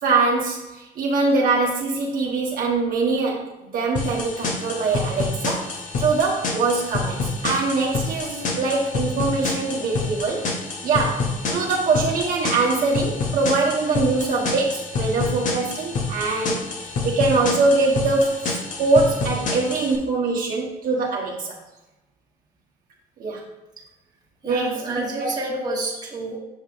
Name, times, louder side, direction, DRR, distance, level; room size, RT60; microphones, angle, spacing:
voice 1, 0.0-3.4 3.7-10.4 10.8-16.7 17.0-21.6 23.2-23.4 24.4-25.3, right 3 dB, 55° right, -3 dB, 1.2 m, -23 dB
sound 1, 4.0-20.0, left 3 dB, 50° left, 1.1 m, -28 dB
voice 2, 24.4-26.4, right 2 dB, 25° right, -3 dB, 1.4 m, -29 dB
7.2 x 5.4 x 2.5 m, 1.0 s
cardioid pair, 110°, 17 cm